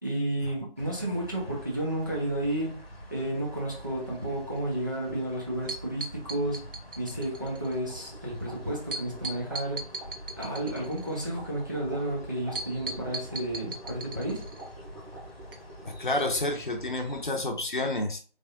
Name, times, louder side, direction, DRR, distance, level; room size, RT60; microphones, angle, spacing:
voice 1, 0.0-2.8 3.1-6.7 7.0-9.8 10.4-14.4, right 1 dB, 20° right, 0.7 m, -32 dB
sound 1, 0.8-17.3, equal, 90° left, 1.2 m, -46 dB
sound 2, 5.7-7.7 8.9-11.3 12.5-14.7 15.5-15.6 16.2-16.4 16.7-16.8, right 3 dB, 65° right, 0.7 m, -38 dB
sound 3, 7.2-16.7, right 1 dB, 5° right, 1.3 m, -48 dB
voice 2, 15.8-18.2, left 2 dB, 55° left, 0.8 m, -29 dB
3.5 x 3.3 x 2.4 m
figure-of-eight pair, 165°, 30 cm